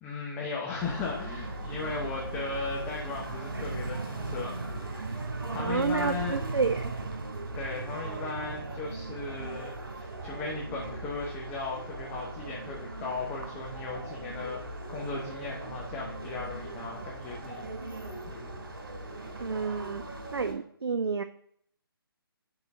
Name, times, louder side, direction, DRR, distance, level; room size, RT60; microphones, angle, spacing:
voice 1, 0.0-4.6 4.9-5.1 5.5-6.4 7.5-17.7 18.3-18.5, left 4 dB, 15° left, -3 dB, 0.9 m, -37 dB
sound 1, 0.8-20.5, right 2 dB, 65° right, 2.8 m, -38 dB
voice 2, 5.6-6.9 19.4-20.0 20.3-21.2, right 5 dB, 85° right, 9 dB, 0.4 m, -29 dB
11.5 x 3.9 x 3.6 m, 0.66 s
figure-of-eight pair, 150°, 13 cm